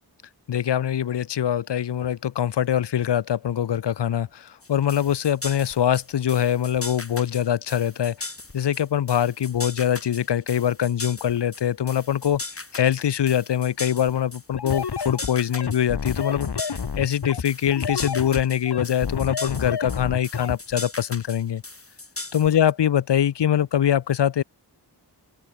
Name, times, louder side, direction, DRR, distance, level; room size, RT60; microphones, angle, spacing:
voice 1, 0.5-8.3 8.5-12.4 12.7-21.6 22.3-24.4, left 10 dB, 85° left, 0.7 m, -23 dB
sound 1, 4.6-22.7, left 3 dB, 35° left, 4.1 m, -38 dB
sound 2, 14.5-20.6, left 6 dB, 70° left, 1.8 m, -29 dB
open air
wide cardioid pair, 95°, 41 cm